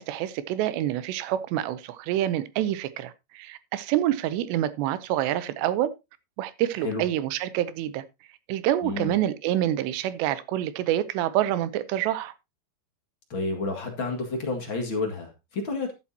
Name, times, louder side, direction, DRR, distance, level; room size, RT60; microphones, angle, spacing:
voice 1, 0.0-5.9 6.4-8.0 8.5-12.3, right 12 dB, 80° right, 2.8 m, -27 dB
voice 2, 8.8-9.1 13.3-15.9, left 3 dB, 45° left, 1.7 m, -30 dB
13.0 x 8.8 x 2.8 m
omnidirectional pair, 5.1 m